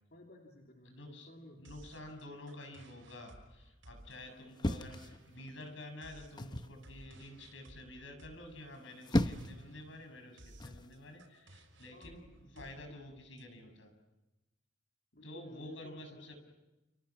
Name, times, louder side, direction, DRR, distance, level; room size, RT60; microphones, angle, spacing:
voice 1, 0.1-2.0 4.3-4.5 11.9-13.2 15.1-16.3, left 1 dB, 50° left, 0 dB, 3.3 m, -56 dB
voice 2, 0.9-1.3 1.6-13.9 15.2-16.4, left 1 dB, 75° left, 5 dB, 6.9 m, -50 dB
sound 1, 1.7-13.4, right 1 dB, 85° right, 6.0 m, -59 dB
sound 2, 4.6-5.7 6.4-6.8 8.7-9.6 10.6-10.9, left 1 dB, 25° left, 0.8 m, -34 dB
29.5 x 29.0 x 6.0 m, 1.0 s
head